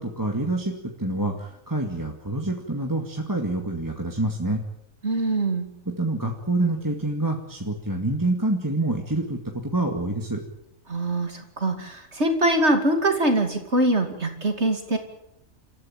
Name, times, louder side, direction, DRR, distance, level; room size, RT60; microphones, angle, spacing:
voice 1, 0.0-4.6 5.9-10.4, right 2 dB, 15° right, 1 dB, 2.2 m, -27 dB
voice 2, 5.0-5.7 10.9-15.0, right 1 dB, 50° right, 5 dB, 2.9 m, -23 dB
28.5 x 14.5 x 9.1 m, 0.78 s
omnidirectional pair, 1.4 m